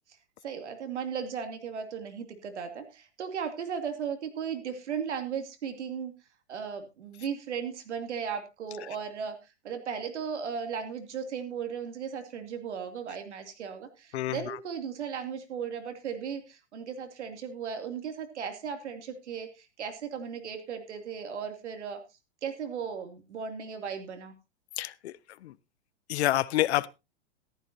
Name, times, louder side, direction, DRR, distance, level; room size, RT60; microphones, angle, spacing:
voice 1, 0.4-6.1 6.5-9.4 9.6-22.0 22.4-24.3, right 7 dB, 90° right, 2.7 m, -36 dB
voice 2, 14.1-14.6 24.8-25.1 25.4-25.5 26.1-26.9, left 14 dB, 70° left, 0.7 m, -28 dB
14.5 x 13.0 x 2.7 m
hypercardioid pair, 150°, 34 cm